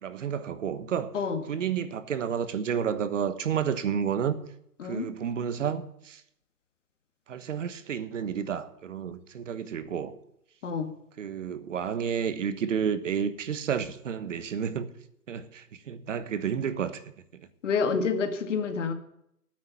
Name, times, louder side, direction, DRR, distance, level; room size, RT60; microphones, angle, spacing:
voice 1, 0.0-1.1 1.5-4.4 4.8-6.2 7.3-10.1 11.2-14.9 15.3-17.5, right 8 dB, 50° right, 1.3 m, -31 dB
voice 2, 17.6-18.9, left 5 dB, 50° left, 1.9 m, -28 dB
9.6 x 8.1 x 9.2 m
hypercardioid pair, 150°, 46 cm